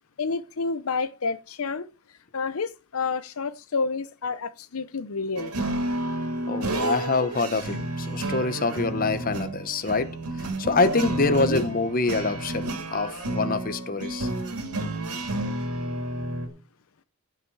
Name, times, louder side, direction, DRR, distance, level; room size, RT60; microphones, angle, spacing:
voice 1, 0.2-1.9 2.3-5.5 11.4-11.6, left 4 dB, 70° left, 0.7 m, -29 dB
sound 1, 5.4-16.5, right 2 dB, 85° right, 2.6 m, -30 dB
voice 2, 6.5-10.1 10.6-14.3, left 3 dB, 40° left, 0.9 m, -25 dB
15.5 x 5.8 x 4.7 m
head